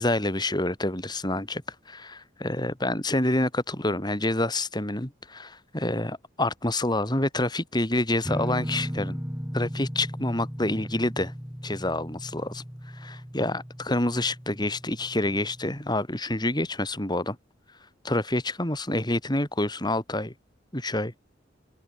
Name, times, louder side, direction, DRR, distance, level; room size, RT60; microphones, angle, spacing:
voice 1, 0.0-9.2 9.5-11.3 11.6-12.6 12.9-17.4 18.0-20.3 20.7-21.1, left 1 dB, 25° left, 5.3 m, -27 dB
sound 1, 8.2-15.8, equal, 10° right, 2.7 m, -36 dB
open air
head